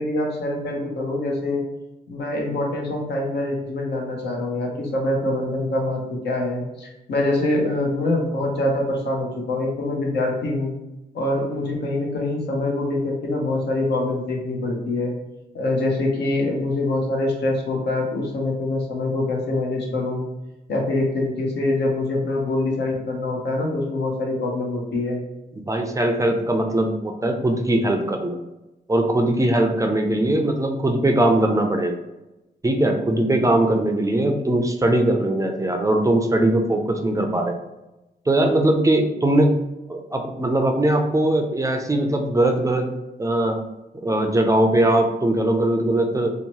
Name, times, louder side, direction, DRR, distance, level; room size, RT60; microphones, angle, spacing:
voice 1, 0.0-1.6 2.1-10.7 11.1-15.1 15.5-20.2 20.7-25.2, left 2 dB, 70° left, 0 dB, 0.7 m, -24 dB
voice 2, 25.6-28.4 28.9-32.0 32.6-37.6 38.3-39.6 39.9-42.9 43.2-43.6 44.0-46.3, right 1 dB, 20° right, 3 dB, 0.4 m, -20 dB
2.8 x 2.0 x 2.9 m, 0.96 s
cardioid pair, 65°, 18 cm